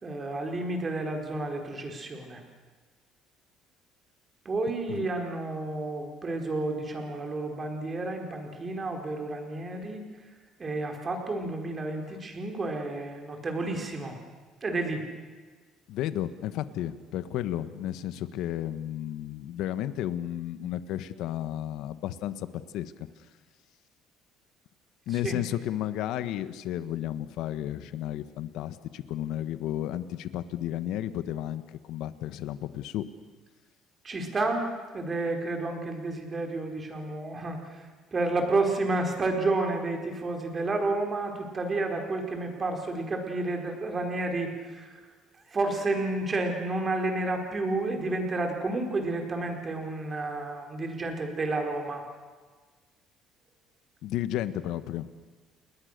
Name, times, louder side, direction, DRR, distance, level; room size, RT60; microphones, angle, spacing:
voice 1, 0.0-2.4 4.4-10.0 10.6-14.2 14.6-15.1 25.2-25.4 34.0-45.0 45.5-52.0, right 2 dB, 25° right, 3 dB, 4.6 m, -31 dB
voice 2, 15.9-22.5 22.7-22.9 25.1-33.0 54.0-55.1, left 12 dB, 75° left, 12 dB, 1.3 m, -33 dB
30.0 x 20.5 x 6.7 m, 1.4 s
cardioid pair, 130°, 0 cm